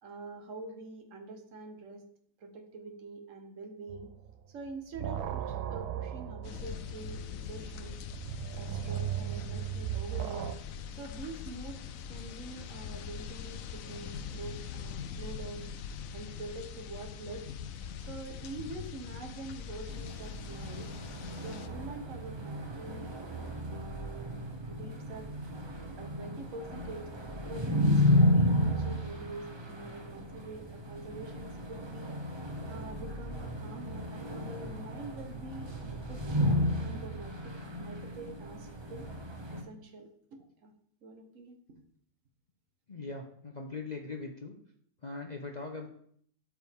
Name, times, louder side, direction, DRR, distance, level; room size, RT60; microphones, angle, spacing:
voice 1, 0.0-2.0 2.4-4.1 4.5-8.0 8.6-10.5 10.9-11.8 12.1-15.7 16.1-17.5 18.0-20.9 21.4-23.4 23.7-24.4 24.7-25.3 26.0-27.1 27.4-32.2 32.7-36.5 36.8-39.1 39.5-40.7 41.0-41.6, right 3 dB, 50° right, 5 dB, 1.4 m, -45 dB
sound 1, 3.9-4.3 4.7-10.6, right 10 dB, 75° right, 1.1 m, -37 dB
sound 2, 6.4-21.7, left 7 dB, 70° left, 0.8 m, -43 dB
sound 3, 19.9-39.6, left 1 dB, 30° right, 0.5 m, -32 dB
voice 2, 42.9-44.5 45.0-45.9, left 3 dB, 45° left, 1 dB, 0.5 m, -40 dB
12.5 x 4.7 x 3.5 m, 0.63 s
omnidirectional pair, 1.8 m